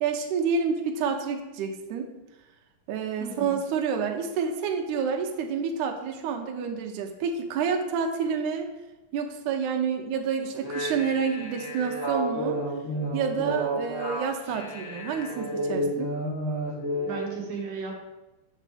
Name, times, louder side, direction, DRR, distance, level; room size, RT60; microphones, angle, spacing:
voice 1, 0.0-2.1 2.9-8.7 9.1-12.6 13.1-16.1, right 6 dB, 80° right, 3 dB, 2.1 m, -28 dB
voice 2, 3.2-3.6 17.0-17.9, right 4 dB, 55° right, -2 dB, 2.1 m, -35 dB
sound 1, 10.5-17.2, right 1 dB, 85° left, 3.4 m, -31 dB
7.4 x 6.4 x 3.4 m, 1.0 s
omnidirectional pair, 3.5 m